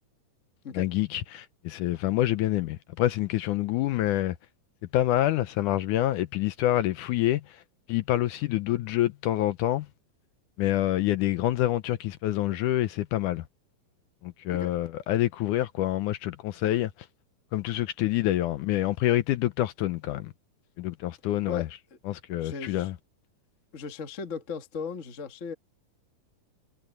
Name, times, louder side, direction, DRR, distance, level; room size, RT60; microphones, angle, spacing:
voice 1, 0.7-4.4 4.9-7.6 7.9-9.9 10.6-13.5 14.2-16.9 17.5-20.3 20.8-21.7 22.1-23.0, left 14 dB, 75° left, 2.0 m, -27 dB
voice 2, 22.4-22.9 23.7-25.5, left 5 dB, 45° left, 0.9 m, -37 dB
omnidirectional pair, 4.0 m